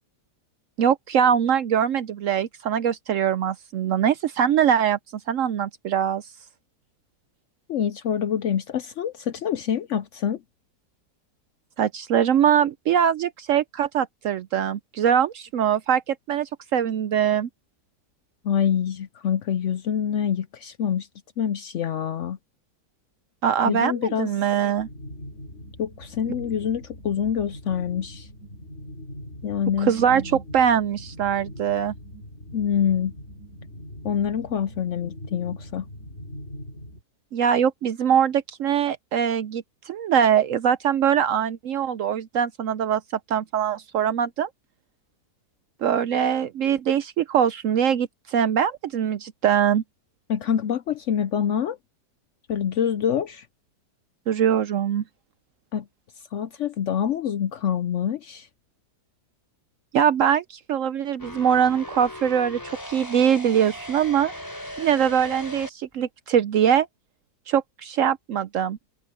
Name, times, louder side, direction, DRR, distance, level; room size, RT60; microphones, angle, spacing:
voice 1, 0.8-5.0 5.3-6.2 11.8-17.5 23.4-24.9 29.8-31.9 37.3-43.0 43.3-44.5 45.8-49.8 54.3-55.0 59.9-64.3 64.8-66.9 67.5-68.8, right 8 dB, 65° right, 0.8 m, -22 dB
voice 2, 7.7-10.4 18.4-21.1 21.4-22.4 23.6-24.3 25.8-28.3 29.4-29.9 32.5-33.1 34.0-35.9 50.3-51.8 52.5-53.5 55.7-55.9 56.3-58.5, left 8 dB, 65° left, 0.7 m, -26 dB
sound 1, 24.7-37.0, equal, 45° left, 4.6 m, -41 dB
sound 2, 61.2-65.7, equal, 10° left, 3.2 m, -38 dB
omnidirectional pair, 1.7 m